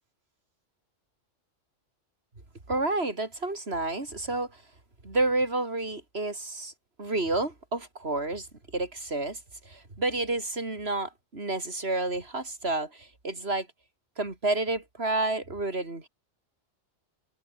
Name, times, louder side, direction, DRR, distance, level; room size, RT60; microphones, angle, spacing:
voice 1, 2.7-4.5 5.0-6.7 7.0-8.5 8.7-9.4 9.7-13.7 14.2-16.1, right 2 dB, 55° right, 4.0 m, -30 dB
omnidirectional pair, 1.3 m